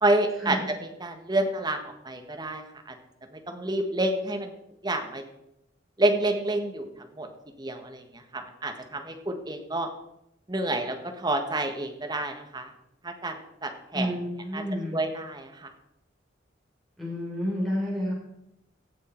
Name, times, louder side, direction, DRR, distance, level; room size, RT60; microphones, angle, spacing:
voice 1, 0.0-2.6 3.5-4.5 4.8-5.2 6.0-6.8 7.2-7.3 7.6-8.0 8.3-9.9 10.5-12.7 13.0-14.1 14.5-14.6 14.9-15.7, right 2 dB, 20° right, 5 dB, 1.4 m, -28 dB
voice 2, 13.9-15.0 17.0-18.1, equal, ahead, -5 dB, 3.7 m, -30 dB
17.0 x 6.4 x 4.5 m, 0.82 s
head